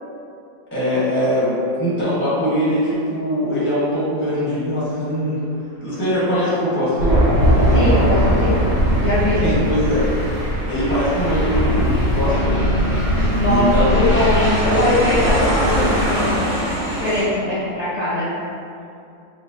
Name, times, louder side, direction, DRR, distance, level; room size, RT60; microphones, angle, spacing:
voice 1, 0.7-5.4 5.8-7.2 9.4-10.1 10.7-12.6 13.5-14.1, equal, 10° left, -10 dB, 0.7 m, -21 dB
Aircraft, 7.0-17.2, equal, 70° right, 2.2 m, -26 dB
Thunder, 7.0-16.1, equal, 90° right, 2.1 m, -19 dB
voice 2, 7.7-8.6 9.0-9.7 12.9-16.5 16.9-18.3, left 1 dB, 80° left, -12 dB, 0.3 m, -21 dB
4.8 x 2.0 x 2.5 m, 2.5 s
omnidirectional pair, 1.7 m